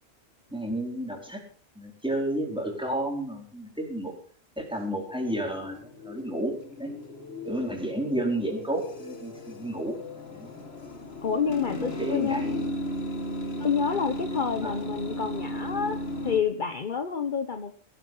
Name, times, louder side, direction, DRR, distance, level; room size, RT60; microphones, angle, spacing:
voice 1, 0.5-1.4 1.7-4.1 4.6-5.8 6.0-6.9 7.4-10.6 11.4-12.6 14.6-14.8, right 1 dB, 5° right, 1 dB, 4.5 m, -32 dB
sound 1, 4.8-16.4, left 1 dB, 70° left, 2.2 m, -36 dB
voice 2, 11.2-12.4 13.6-16.0 16.2-17.8, left 6 dB, 50° left, 9 dB, 1.1 m, -28 dB
17.5 x 11.5 x 5.5 m, 0.43 s
omnidirectional pair, 1.1 m